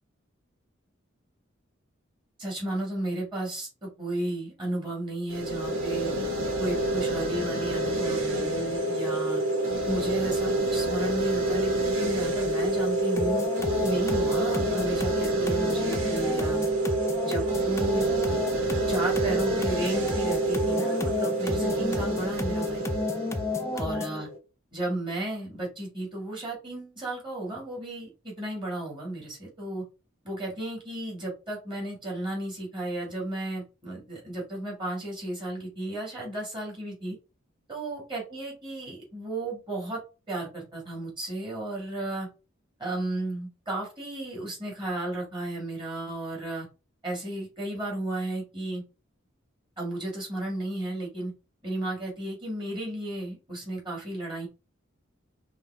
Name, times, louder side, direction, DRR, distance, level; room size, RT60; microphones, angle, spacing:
voice 1, 2.4-6.1 6.6-9.4 9.8-13.5 13.8-16.6 17.2-18.1 18.9-22.9 23.7-24.3 24.7-29.8 30.2-37.2 37.7-40.0 40.3-42.3 42.8-46.7 47.0-48.8 49.8-51.3 51.6-54.5, right 1 dB, 25° right, -2 dB, 2.2 m, -34 dB
sound 1, 5.3-24.4, right 2 dB, 80° right, 1.5 m, -28 dB
sound 2, 13.2-24.2, left 3 dB, 15° left, 0.5 m, -32 dB
5.4 x 2.5 x 3.6 m, 0.31 s
head